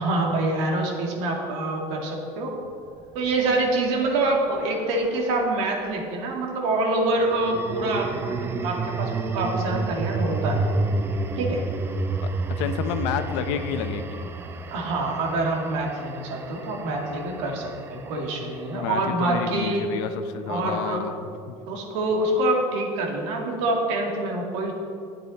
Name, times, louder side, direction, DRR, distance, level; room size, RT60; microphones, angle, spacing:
voice 1, 0.0-2.6 3.1-10.6 11.4-11.6 14.7-19.8 20.5-21.0 21.7-24.7, right 2 dB, 85° right, 0 dB, 2.2 m, -26 dB
sound 1, 3.0-5.5 7.1-19.4, right 3 dB, 15° right, 0.3 m, -31 dB
voice 2, 12.6-14.3 18.7-21.6, left 7 dB, 80° left, 8 dB, 0.9 m, -30 dB
13.0 x 8.8 x 4.2 m, 2.4 s
cardioid pair, 180°, 15 cm